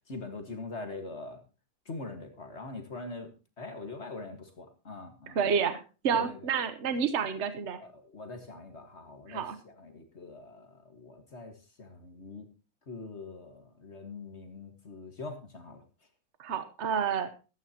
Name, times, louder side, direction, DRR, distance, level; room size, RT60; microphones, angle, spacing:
voice 1, 0.1-1.4 1.9-3.3 3.6-5.4 6.1-6.4 7.8-12.5 12.9-15.8, left 3 dB, 50° left, 6 dB, 2.0 m, -43 dB
voice 2, 5.3-7.8 9.3-9.6 16.4-17.3, right 7 dB, 55° right, 11 dB, 1.3 m, -29 dB
15.5 x 12.5 x 2.9 m, 0.32 s
omnidirectional pair, 1.5 m